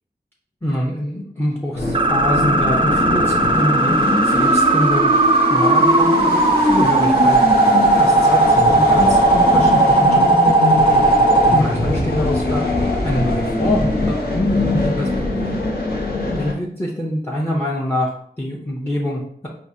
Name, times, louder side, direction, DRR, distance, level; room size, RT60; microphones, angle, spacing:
voice 1, 0.6-10.5 11.5-12.6 13.0-15.1 15.3-15.6 16.3-18.1 18.4-19.5, equal, 10° left, -2 dB, 0.7 m, -25 dB
sound 1, 1.7-16.5, left 2 dB, 65° left, 1.0 m, -21 dB
sound 2, 1.9-11.6, right 2 dB, 30° right, 0.3 m, -16 dB
4.7 x 2.3 x 2.7 m, 0.63 s
wide cardioid pair, 50°, 17 cm